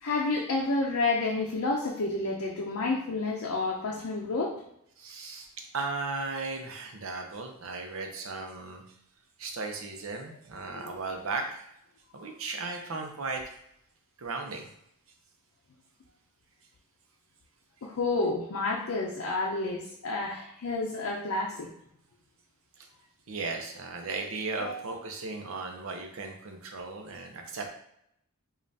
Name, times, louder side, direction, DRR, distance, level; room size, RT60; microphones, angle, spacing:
voice 1, 0.0-4.6 10.8-10.9 12.1-12.2 17.8-21.7 24.6-24.8, left 3 dB, 80° left, -1 dB, 0.5 m, -30 dB
voice 2, 5.0-5.5 5.7-8.8 9.4-11.7 12.1-13.4 14.2-14.7 22.8-22.9 23.3-27.7, right 3 dB, 70° right, 3 dB, 0.7 m, -36 dB
5.1 x 2.4 x 2.7 m, 0.73 s
head